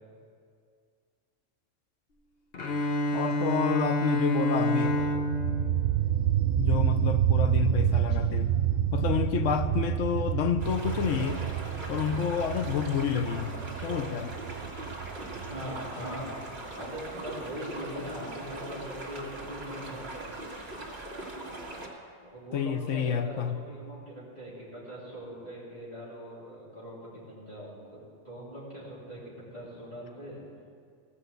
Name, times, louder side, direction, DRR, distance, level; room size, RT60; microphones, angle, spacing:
Bowed string instrument, 2.5-6.6, equal, 50° left, 1.1 m, -29 dB
voice 1, 3.1-5.0 6.5-11.4 11.9-13.5 13.8-14.4 22.5-23.6, left 8 dB, 75° left, 8 dB, 1.0 m, -29 dB
voice 2, 4.6-5.1 13.7-13.9 15.4-16.3 16.8-20.3 22.3-28.0 28.2-30.4, equal, 30° left, -9 dB, 2.9 m, -41 dB
sound 1, 4.9-16.4, right 11 dB, 65° right, 0.6 m, -28 dB
sound 2, 10.6-21.9, right 2 dB, 40° right, 1.7 m, -40 dB
16.0 x 5.6 x 8.0 m, 2.2 s
omnidirectional pair, 1.3 m